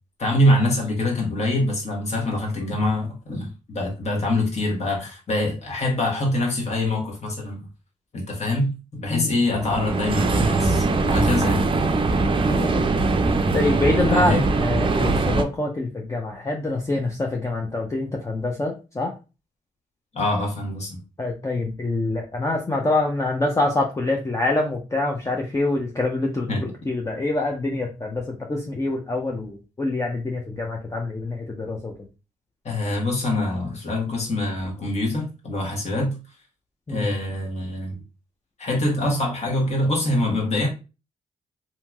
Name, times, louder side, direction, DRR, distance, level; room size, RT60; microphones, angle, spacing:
voice 1, 0.2-7.6 8.1-11.7 14.1-14.4 20.1-21.0 26.5-26.6 32.6-36.2 36.9-38.0 38.6-40.7, left 1 dB, 55° left, 0 dB, 1.4 m, -24 dB
sound 1, 9.5-15.4, right 3 dB, 40° right, 0.5 m, -21 dB
voice 2, 12.3-12.9 13.5-19.1 21.2-31.9 36.9-37.1, left 2 dB, 20° left, 0 dB, 0.6 m, -25 dB
2.9 x 2.8 x 2.3 m, 0.31 s
supercardioid pair, 55°, 14 cm